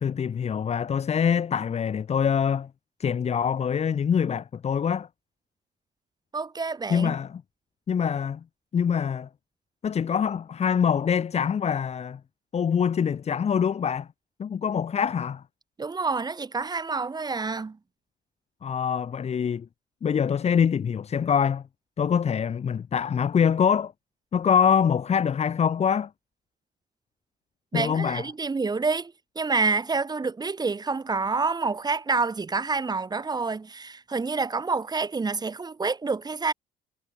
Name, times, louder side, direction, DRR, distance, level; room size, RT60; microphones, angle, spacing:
voice 1, 0.0-2.7 3.0-5.1 6.9-7.4 7.9-8.4 8.7-9.3 9.8-12.2 12.5-14.1 14.4-15.4 18.6-19.7 20.0-21.6 22.0-23.9 24.3-26.1 27.7-28.3, left 7 dB, 40° left, 2.3 m, -24 dB
voice 2, 6.3-7.1 15.8-17.8 27.7-36.5, right 4 dB, 25° right, 7.2 m, -28 dB
cardioid pair, 110°, 17 cm